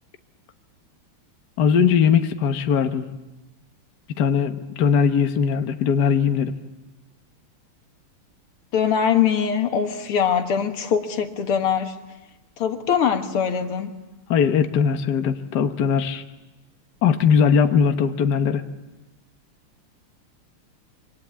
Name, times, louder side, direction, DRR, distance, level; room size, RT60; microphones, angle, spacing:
voice 1, 1.6-3.1 4.2-6.5 14.3-16.2 17.0-18.6, left 6 dB, 55° left, 1.6 m, -20 dB
voice 2, 8.7-12.0 12.6-13.9, left 7 dB, 85° left, 2.5 m, -22 dB
26.0 x 25.0 x 8.6 m
omnidirectional pair, 2.4 m